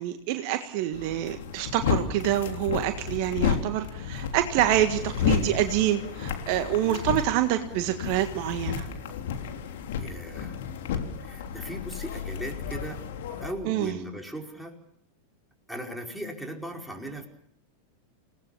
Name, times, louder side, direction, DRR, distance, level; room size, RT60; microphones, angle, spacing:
voice 1, 0.0-8.9 13.6-14.0, right 12 dB, 45° right, 8 dB, 1.7 m, -26 dB
sound 1, 0.9-13.5, left 7 dB, 55° left, 3.4 m, -32 dB
voice 2, 10.0-10.6 11.2-13.0 13.4-14.8 15.7-17.3, equal, ahead, 1 dB, 5.0 m, -38 dB
28.5 x 18.5 x 7.2 m, 0.66 s
figure-of-eight pair, 90°, 0 cm